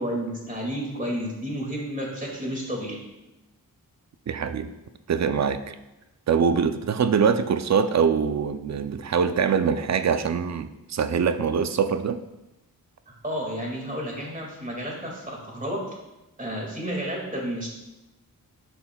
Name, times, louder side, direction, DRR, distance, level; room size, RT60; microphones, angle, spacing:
voice 1, 0.0-3.0 13.2-15.8 16.4-17.7, equal, 20° right, -2 dB, 2.1 m, -31 dB
voice 2, 4.3-4.7 5.1-5.7 6.3-12.2, right 6 dB, 50° right, 11 dB, 0.5 m, -23 dB
9.9 x 5.6 x 2.3 m, 0.98 s
wide cardioid pair, 80°, 36 cm